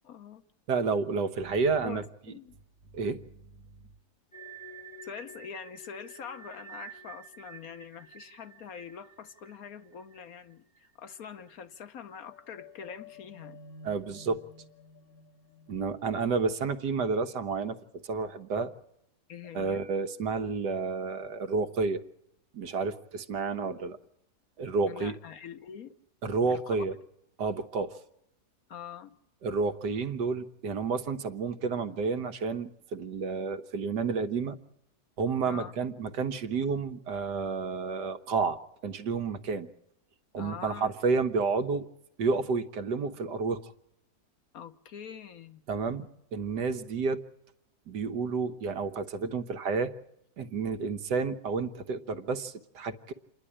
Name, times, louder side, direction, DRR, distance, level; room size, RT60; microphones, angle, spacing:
voice 1, 0.0-0.4 1.8-2.6 5.0-13.6 19.3-19.8 24.9-25.9 26.4-26.8 28.7-29.1 35.5-35.7 40.4-40.9 44.5-45.6 50.8-50.9, left 7 dB, 65° left, 1.5 m, -44 dB
voice 2, 0.7-2.0 2.9-3.2 13.8-14.4 15.7-17.8 18.0-18.7 19.5-22.0 22.5-24.0 24.6-25.1 26.2-26.9 27.4-28.0 29.4-34.6 35.2-39.7 40.3-41.9 42.2-43.7 45.7-47.2 47.9-49.9 50.4-53.1, right 4 dB, 85° right, 1.8 m, -30 dB
sound 1, 4.3-11.2 11.4-11.6 12.1-17.5, right 2 dB, 35° left, 1.4 m, -50 dB
28.0 x 11.5 x 10.0 m
omnidirectional pair, 1.7 m